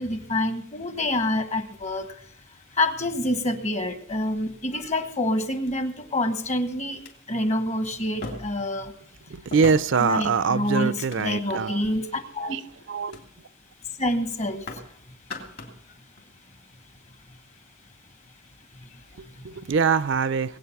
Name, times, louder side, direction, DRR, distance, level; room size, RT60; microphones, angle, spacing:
voice 1, 0.0-2.2 2.7-8.9 10.0-12.6 14.0-14.9 18.7-19.0 19.4-19.5, left 1 dB, 35° left, 1.2 m, -27 dB
sound 1, 1.5-2.5 3.4-3.5 4.1-4.7 5.6-5.7 6.4-6.5 6.9-7.1 8.2-8.7 9.5-10.1 10.8-11.7 12.2-12.5 13.1-13.3 13.6-13.8 14.0-14.9 15.2-15.8 16.2-16.3, left 2 dB, 60° left, 3.0 m, -40 dB
voice 2, 9.3-11.8 12.4-12.6 12.9-13.2 19.2-20.6, right 5 dB, 65° right, 0.5 m, -24 dB
20.5 x 8.6 x 5.7 m
head